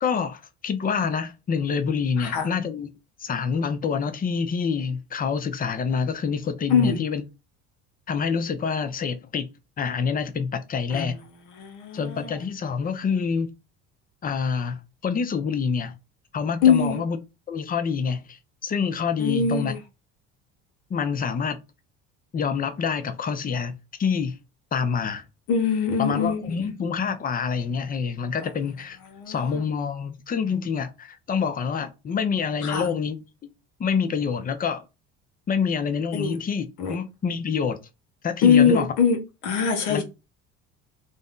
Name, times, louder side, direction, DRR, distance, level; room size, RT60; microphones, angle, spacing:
voice 1, 0.0-2.9 3.2-7.2 8.1-9.5 9.8-11.2 11.9-13.5 14.2-15.9 16.3-17.2 17.5-19.7 20.9-21.6 22.3-24.3 24.7-25.2 26.0-29.0 29.3-33.2 33.8-34.8 35.5-37.8 38.2-38.9 39.9-40.0, left 6 dB, 25° left, 0.5 m, -27 dB
voice 2, 11.6-12.3 16.6-17.0 19.2-19.8 25.5-26.7 29.2-29.6 32.6-32.9 36.1-36.4 36.8-36.9 38.4-39.2 39.4-40.0, left 6 dB, 75° left, 0.9 m, -22 dB
2.6 x 2.1 x 3.6 m
supercardioid pair, 95°, 31 cm